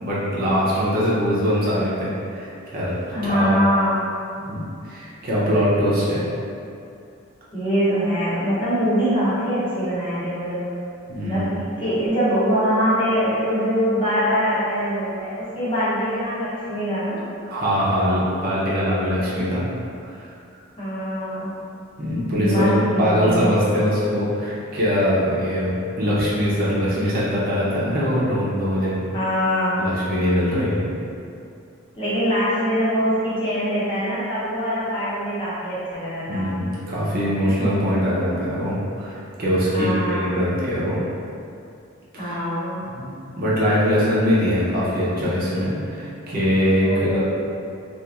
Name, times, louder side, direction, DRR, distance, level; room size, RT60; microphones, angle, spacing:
voice 1, 0.0-3.5 4.4-6.2 11.1-11.5 17.5-19.7 20.1-20.3 22.0-29.1 29.8-30.8 36.3-41.0 42.1-42.4 42.9-47.2, equal, 40° right, -8 dB, 0.6 m, -22 dB
voice 2, 3.1-4.0 7.5-10.7 11.2-17.2 20.8-21.5 22.4-23.6 29.1-29.9 32.0-36.5 39.7-40.3 42.2-42.8 46.7-47.2, equal, 25° left, -11 dB, 0.7 m, -23 dB
2.9 x 2.4 x 2.3 m, 2.5 s
head